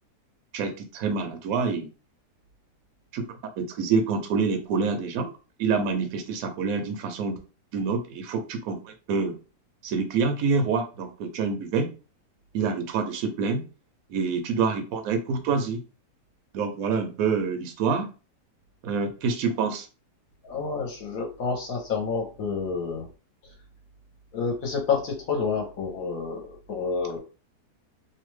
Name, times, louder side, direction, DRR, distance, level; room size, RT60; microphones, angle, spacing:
voice 1, 0.5-1.9 3.1-3.3 3.6-5.3 5.6-7.4 7.7-9.4 9.8-11.9 12.5-13.6 14.1-15.8 16.5-18.1 18.8-19.9, right 5 dB, 70° right, 5 dB, 0.9 m, -26 dB
voice 2, 20.4-23.1 24.3-27.2, left 5 dB, 65° left, 1 dB, 1.0 m, -29 dB
2.8 x 2.2 x 3.1 m, 0.33 s
omnidirectional pair, 1.7 m